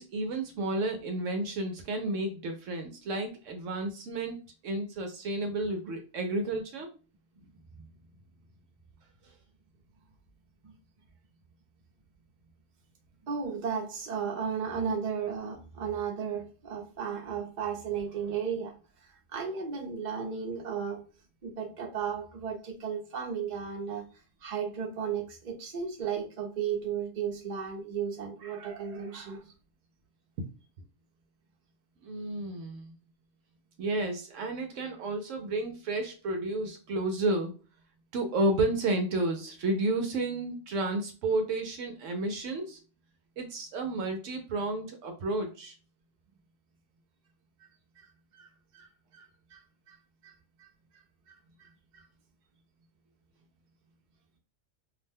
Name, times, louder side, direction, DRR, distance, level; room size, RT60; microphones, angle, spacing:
voice 1, 0.0-4.4 4.6-6.9 32.0-32.9 33.8-37.5 38.1-42.8 43.4-45.7, right 2 dB, 75° right, 0.9 m, -31 dB
voice 2, 13.3-18.8 19.0-21.0 21.4-24.0 24.4-29.4 48.0-48.1 48.3-48.5 48.7-48.9 49.1-49.6 49.9-50.0 50.2-50.3 50.6-50.7 50.9-51.7 51.9-52.0, right 7 dB, 45° right, 0.7 m, -35 dB
2.6 x 2.1 x 3.4 m
omnidirectional pair, 1.4 m